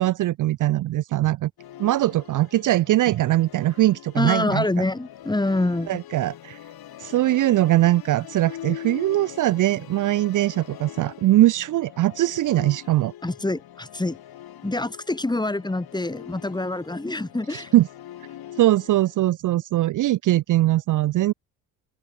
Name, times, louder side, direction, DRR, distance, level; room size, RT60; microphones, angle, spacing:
voice 1, 0.0-1.5 1.8-4.8 5.9-6.6 7.0-13.1 17.5-17.9 18.6-21.3, right 15 dB, 40° right, 0.8 m, -21 dB
Musical instrument, 1.6-19.2, left 11 dB, 50° left, 6.2 m, -43 dB
voice 2, 4.1-6.0 13.2-14.2 14.6-17.7, left 2 dB, 10° left, 2.0 m, -26 dB
figure-of-eight pair, 55°, 48 cm